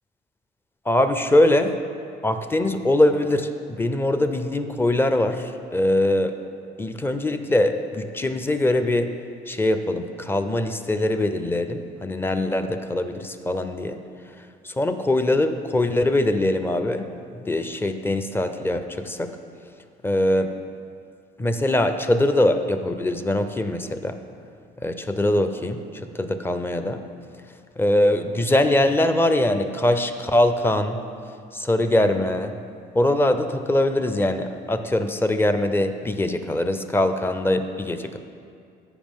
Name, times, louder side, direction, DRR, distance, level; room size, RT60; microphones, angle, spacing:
voice 1, 0.9-1.7 2.2-6.4 6.8-9.1 9.5-14.0 14.6-17.1 17.4-19.3 20.0-20.5 21.4-24.2 24.8-25.8 26.1-27.0 27.8-31.0 31.5-32.5 32.9-38.2, left 1 dB, 15° left, 9 dB, 0.5 m, -22 dB
14.0 x 5.2 x 3.6 m, 2.4 s
cardioid pair, 110°, 17 cm